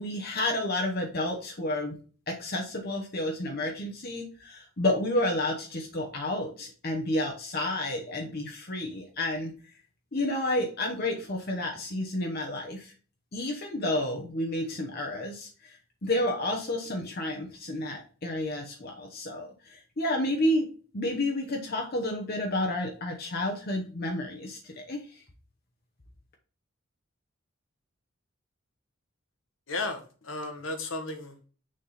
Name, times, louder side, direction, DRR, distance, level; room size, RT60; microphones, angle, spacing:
voice 1, 0.0-2.0 2.3-9.5 10.1-12.9 13.3-20.7 20.9-25.0, left 1 dB, 45° left, 1 dB, 1.0 m, -30 dB
voice 2, 29.7-31.5, left 2 dB, 70° left, 5 dB, 1.5 m, -34 dB
6.5 x 3.8 x 4.0 m, 0.38 s
head